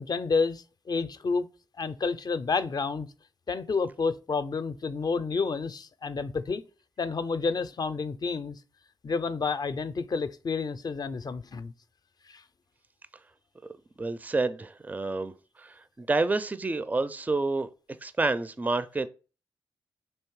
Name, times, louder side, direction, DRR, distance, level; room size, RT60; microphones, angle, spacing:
voice 1, 0.0-1.5 1.8-3.1 3.5-6.6 7.0-8.6 9.0-11.7 12.3-12.4, left 4 dB, 45° left, 0.4 m, -30 dB
voice 2, 14.0-15.3 15.6-17.7 18.0-19.1, right 3 dB, 15° right, 0.4 m, -28 dB
3.2 x 3.1 x 4.6 m
supercardioid pair, 40°, 10 cm